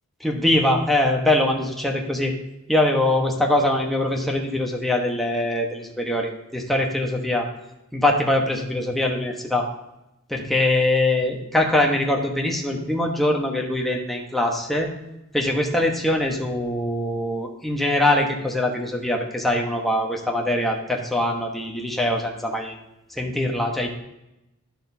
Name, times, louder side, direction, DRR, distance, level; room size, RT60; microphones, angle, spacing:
voice 1, 0.2-2.3 2.7-7.5 7.9-9.7 10.3-14.9 15.3-22.8 23.1-23.9, left 1 dB, ahead, 0 dB, 1.1 m, -22 dB
11.5 x 6.5 x 2.7 m, 0.91 s
head